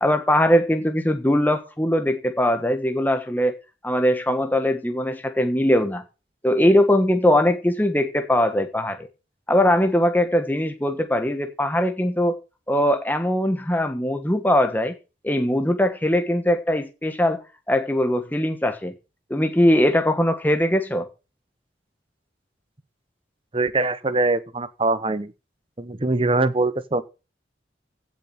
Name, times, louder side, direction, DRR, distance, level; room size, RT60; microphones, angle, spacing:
voice 1, 0.0-3.5 3.8-6.0 6.4-9.1 9.5-12.4 12.7-14.9 15.2-17.4 17.7-18.9 19.3-21.1, left 1 dB, 10° left, 1.3 m, -21 dB
voice 2, 23.5-25.3 25.8-27.0, right 2 dB, 30° right, 0.9 m, -23 dB
16.0 x 7.3 x 5.9 m
head